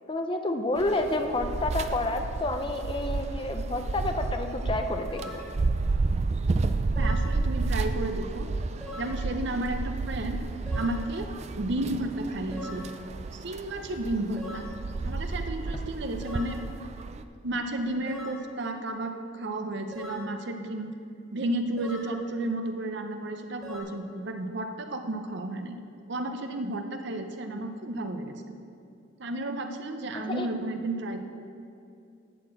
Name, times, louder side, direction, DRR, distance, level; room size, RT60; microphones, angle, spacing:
voice 1, 0.1-5.3 22.6-22.7 30.3-30.5, left 2 dB, 25° left, 5 dB, 0.5 m, -29 dB
sound 1, 0.8-17.2, right 3 dB, 30° right, 0.3 m, -31 dB
sound 2, 5.1-5.5 7.0-7.3 8.8-9.2 10.7-11.0 12.5-12.9 14.4-14.7 16.2-16.6 18.1-18.4 19.9-20.3 21.8-22.1 23.6-23.8, left 1 dB, ahead, 2.2 m, -41 dB
voice 2, 7.0-8.5 9.0-10.4 10.7-11.3 11.6-12.8 13.3-14.7 15.0-16.6 17.4-20.9 21.3-25.8 26.1-28.6 29.2-31.3, right 1 dB, 55° right, 6 dB, 0.7 m, -32 dB
11.5 x 4.3 x 7.6 m, 2.6 s
head